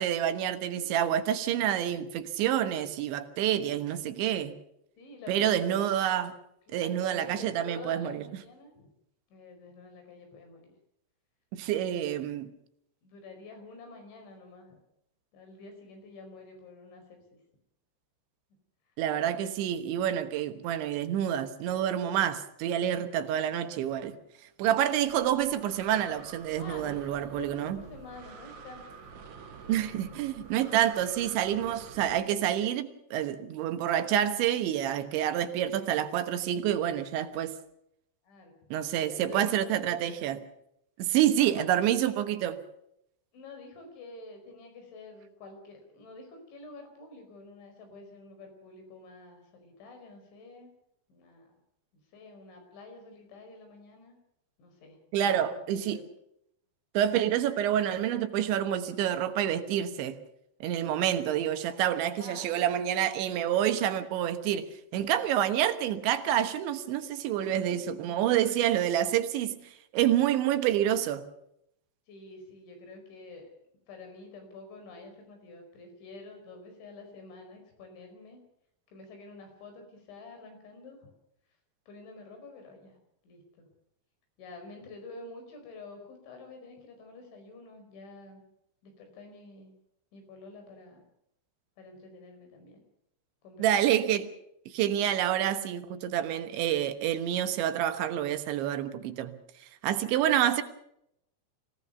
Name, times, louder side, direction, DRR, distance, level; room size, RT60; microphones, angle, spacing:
voice 1, 0.0-4.6 5.3-6.3 6.7-8.2 11.5-12.5 19.0-24.2 24.6-27.8 29.7-37.6 38.7-40.4 41.0-42.6 55.1-56.0 57.0-60.2 60.6-69.6 69.9-71.3 93.6-94.3 94.7-99.4 99.8-100.6, right 11 dB, 80° right, 3.5 m, -28 dB
voice 2, 0.7-1.2 5.0-5.9 6.7-8.9 9.3-10.7 11.9-12.0 12.3-12.4 13.0-14.8 15.3-17.2 26.5-29.1 38.2-38.6 39.1-40.3 41.5-41.7 43.3-50.7 51.1-51.6 52.1-54.2 54.6-56.0 62.2-62.6 67.6-67.8 72.1-73.5 73.9-78.4 78.9-81.1 81.9-83.0 83.2-83.7 84.4-88.4 88.8-89.7 90.1-91.0 91.8-92.8 93.4-93.7 100.1-100.5, left 3 dB, 75° left, 7.2 m, -48 dB
Breathing, 25.1-32.2, right 5 dB, 50° right, 2.5 m, -48 dB
24.5 x 17.0 x 7.0 m
omnidirectional pair, 5.3 m